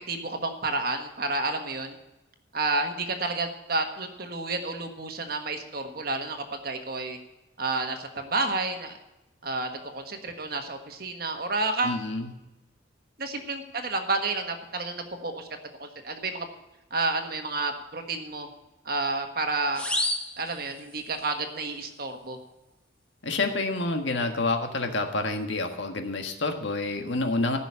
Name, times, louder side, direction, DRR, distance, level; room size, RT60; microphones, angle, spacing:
voice 1, 0.1-2.0 2.5-7.2 7.6-9.0 9.4-12.0 13.2-15.5 15.8-16.5 16.9-18.5 18.8-19.8 20.4-22.4, right 3 dB, 50° right, 5 dB, 1.5 m, -30 dB
voice 2, 11.8-12.3 23.2-27.6, left 2 dB, 70° left, 5 dB, 1.6 m, -28 dB
sound 1, 19.7-21.3, left 1 dB, 5° left, 1.1 m, -31 dB
15.0 x 6.3 x 8.5 m, 0.99 s
head